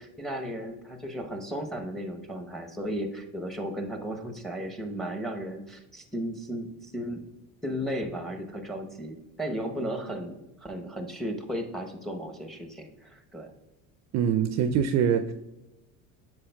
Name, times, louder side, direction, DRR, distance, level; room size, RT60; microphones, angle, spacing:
voice 1, 0.0-7.2 7.6-10.4 10.6-13.5, equal, ahead, 5 dB, 0.8 m, -35 dB
voice 2, 14.1-15.3, right 8 dB, 45° right, 9 dB, 0.4 m, -24 dB
8.2 x 6.1 x 2.2 m, 1.0 s
supercardioid pair, 100°, 39 cm